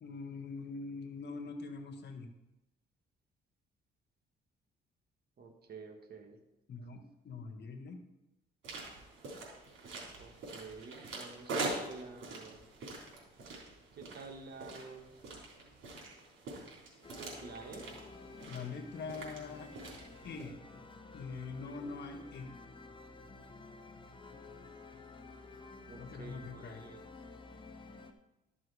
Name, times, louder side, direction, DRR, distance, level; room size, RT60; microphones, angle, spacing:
voice 1, 0.0-2.3 6.7-8.0 18.5-19.7 20.2-20.8 21.1-22.5 26.0-26.8, left 4 dB, 60° left, 6 dB, 1.5 m, -43 dB
voice 2, 5.4-6.4 10.2-12.6 13.9-15.1 17.1-18.0 25.9-27.0, right 4 dB, 55° right, 4 dB, 1.6 m, -50 dB
sound 1, 8.6-20.5, right 2 dB, 75° right, 3.5 m, -44 dB
sound 2, 17.0-28.1, left 3 dB, 25° left, 1.0 m, -52 dB
12.5 x 6.2 x 4.8 m, 0.93 s
cardioid pair, 90°, 20 cm